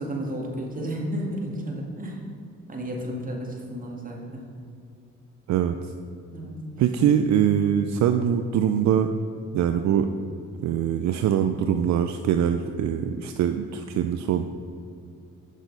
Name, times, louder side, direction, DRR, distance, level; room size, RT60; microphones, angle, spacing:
voice 1, 0.0-2.2 2.7-4.4 6.3-6.5, equal, 25° right, -1 dB, 2.0 m, -32 dB
voice 2, 6.8-9.1 9.5-10.1 10.6-14.5, right 9 dB, 65° right, 7 dB, 0.5 m, -23 dB
8.3 x 6.2 x 5.3 m, 2.5 s
cardioid pair, 90°, 30 cm